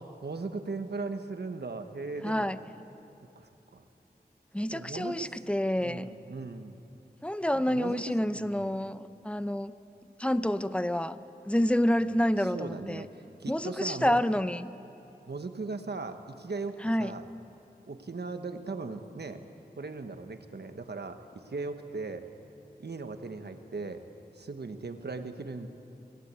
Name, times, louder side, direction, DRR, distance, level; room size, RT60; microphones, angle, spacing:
voice 1, 0.0-2.5 3.3-3.8 4.7-5.3 5.8-6.8 7.5-8.7 12.4-14.2 15.3-17.2 17.9-19.4 19.8-22.3 22.8-24.0 24.3-25.7, right 3 dB, 80° right, 7 dB, 1.2 m, -38 dB
voice 2, 2.2-2.6 4.5-6.1 7.2-9.7 10.2-13.1 13.5-14.7 16.8-17.1, left 1 dB, 5° left, 13 dB, 0.7 m, -28 dB
25.0 x 15.5 x 8.3 m, 2.9 s
wide cardioid pair, 60°, 17 cm